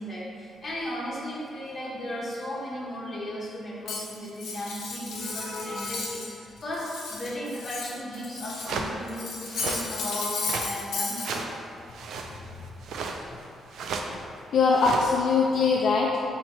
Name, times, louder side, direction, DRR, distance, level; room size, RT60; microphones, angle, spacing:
voice 1, 0.0-11.5, equal, 30° left, -7 dB, 1.0 m, -35 dB
Cutlery silverware, 3.9-6.3 6.6-8.8 9.1-11.3, left 4 dB, 90° left, 0.7 m, -34 dB
voice 2, 5.2-6.0 12.1-12.7 13.0-13.1 14.1-14.3 14.5-16.2, left 4 dB, 55° left, -2 dB, 0.3 m, -25 dB
sound 1, 8.2-8.3 8.6-8.9 9.5-9.8 10.4-10.7 11.2-11.6 11.9-12.4 12.8-13.4 13.7-14.3 14.7-15.4, right 4 dB, 70° right, 0.3 m, -34 dB
4.1 x 2.8 x 4.5 m, 2.4 s
cardioid pair, 170°, 0 cm